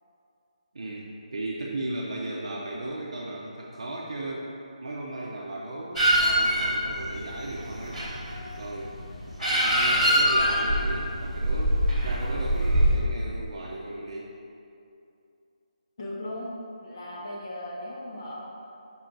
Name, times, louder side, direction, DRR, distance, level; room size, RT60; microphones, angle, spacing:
voice 1, 0.7-4.5 4.8-8.0 8.6-8.9 9.5-14.3, right 1 dB, 50° right, -4 dB, 0.7 m, -36 dB
sound 1, 5.9-12.9, equal, 5° left, 1.2 m, -24 dB
voice 2, 16.0-16.5 16.8-18.4, left 1 dB, 35° left, -5 dB, 1.2 m, -37 dB
5.8 x 5.5 x 3.9 m, 2.6 s
hypercardioid pair, 175°, 4 cm